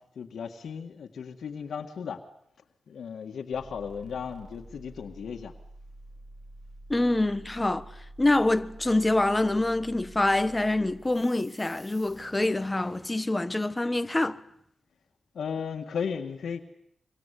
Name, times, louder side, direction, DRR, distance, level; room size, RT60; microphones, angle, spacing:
voice 1, 0.2-2.2 2.9-5.5 15.3-16.6, left 6 dB, 85° left, 1.9 m, -35 dB
sound 1, 3.5-13.1, right 1 dB, 20° right, 4.2 m, -49 dB
voice 2, 6.9-14.4, left 2 dB, 15° left, 1.3 m, -26 dB
26.0 x 25.5 x 8.5 m
wide cardioid pair, 95°, 0 cm